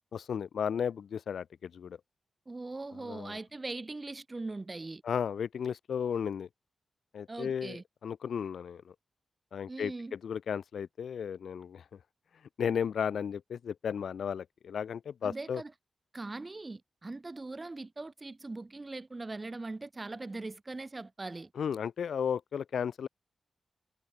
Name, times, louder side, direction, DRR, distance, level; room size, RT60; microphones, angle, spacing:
voice 1, 0.1-2.0 3.0-3.4 5.0-6.5 7.1-8.9 9.5-11.8 12.6-15.6 21.5-23.1, left 7 dB, 85° left, 1.3 m, -34 dB
voice 2, 2.5-5.0 7.3-7.8 9.7-10.1 15.2-15.7 16.1-21.5, right 2 dB, 20° right, 1.1 m, -41 dB
wide cardioid pair, 170°, 0 cm